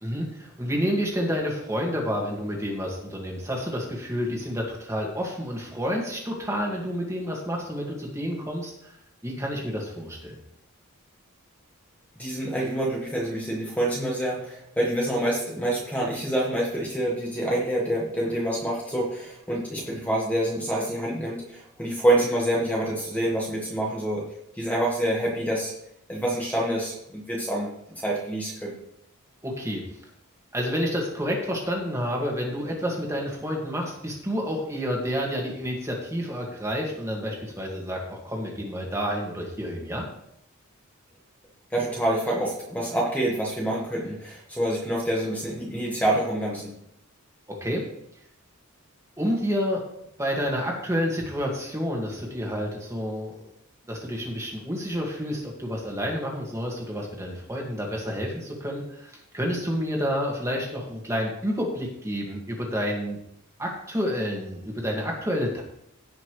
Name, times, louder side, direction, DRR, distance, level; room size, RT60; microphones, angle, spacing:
voice 1, 0.0-8.9 9.2-10.4 29.4-29.8 30.5-40.1 47.5-47.8 49.2-49.8 50.2-53.5 53.9-63.2 63.6-65.6, equal, 15° right, -1 dB, 2.0 m, -29 dB
voice 2, 12.2-24.3 24.5-25.7 26.1-28.7 41.7-46.7, right 1 dB, 5° left, -3 dB, 1.5 m, -27 dB
17.0 x 5.8 x 3.2 m, 0.75 s
head